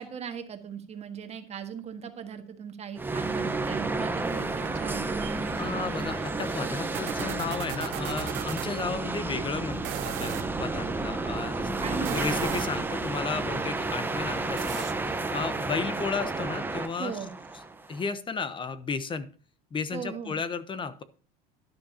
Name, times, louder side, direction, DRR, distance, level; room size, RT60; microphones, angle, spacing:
voice 1, 0.0-5.2 11.8-12.4 17.0-17.3 19.9-20.4, right 7 dB, 35° right, 7 dB, 1.6 m, -38 dB
sound 1, 3.0-18.1, right 3 dB, 10° right, 0.9 m, -31 dB
sound 2, 4.6-8.7 9.7-10.5 11.9-12.9 14.6-14.9, right 15 dB, 70° right, 0.9 m, -39 dB
voice 2, 5.6-17.2 17.9-19.3 19.7-21.0, left 5 dB, 25° left, 13 dB, 0.9 m, -34 dB
12.0 x 10.5 x 2.8 m, 0.39 s
supercardioid pair, 125°, 20 cm